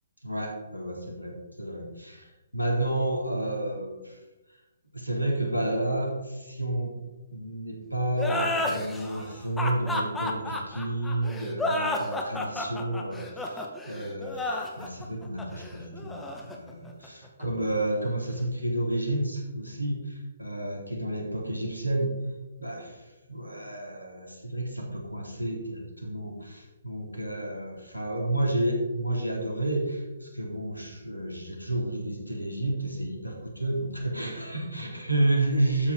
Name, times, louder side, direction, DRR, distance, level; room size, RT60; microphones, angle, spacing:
voice 1, 0.2-2.3 2.5-4.2 4.9-7.0 7.3-16.2 16.4-22.1 22.6-22.9 23.3-35.9, right 1 dB, 90° left, 0 dB, 3.6 m, -30 dB
sound 1, 8.2-17.4, left 2 dB, 5° left, 1.5 m, -31 dB
12.5 x 8.7 x 4.8 m, 1.1 s
figure-of-eight pair, 130°, 0 cm